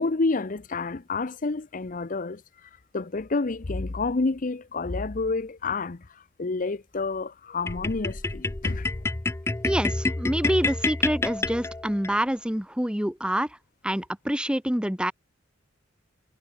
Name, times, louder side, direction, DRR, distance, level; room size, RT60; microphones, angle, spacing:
voice 1, 0.0-2.4 2.9-6.0 6.4-8.9, left 3 dB, 45° left, 0.7 m, -29 dB
sound 1, 7.7-12.1, left 2 dB, 15° left, 0.4 m, -28 dB
voice 2, 9.6-13.5 13.8-15.1, equal, 5° right, 1.2 m, -26 dB
head